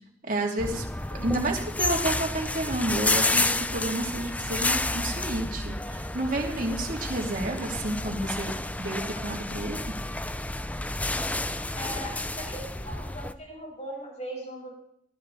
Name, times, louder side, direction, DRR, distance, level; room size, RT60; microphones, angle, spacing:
voice 1, 0.2-0.8 1.2-8.5 8.8-9.8, right 1 dB, 45° right, -1 dB, 3.0 m, -30 dB
sound 1, 0.6-13.3, left 2 dB, 10° left, 0.6 m, -30 dB
voice 2, 11.7-14.7, equal, 35° left, -1 dB, 6.6 m, -39 dB
19.5 x 15.0 x 4.2 m, 0.74 s
head